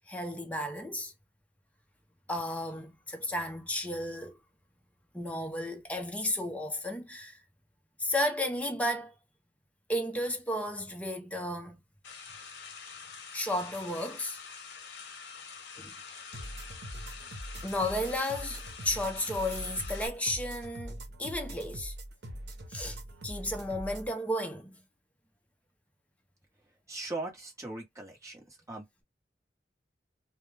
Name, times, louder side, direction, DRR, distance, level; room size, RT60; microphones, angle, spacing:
voice 1, 0.1-1.1 2.3-4.4 5.1-7.4 8.0-9.1 9.9-11.8 13.3-14.4 15.8-15.9 17.6-21.9 22.7-23.0 23.2-24.8, left 1 dB, 10° left, 0.6 m, -33 dB
sound 1, 12.0-20.1, left 5 dB, 75° left, 0.7 m, -46 dB
sound 2, 16.3-24.1, equal, 80° right, 0.8 m, -42 dB
voice 2, 26.9-28.4 28.7-29.0, right 2 dB, 15° right, 1.1 m, -39 dB
2.3 x 2.2 x 3.2 m
head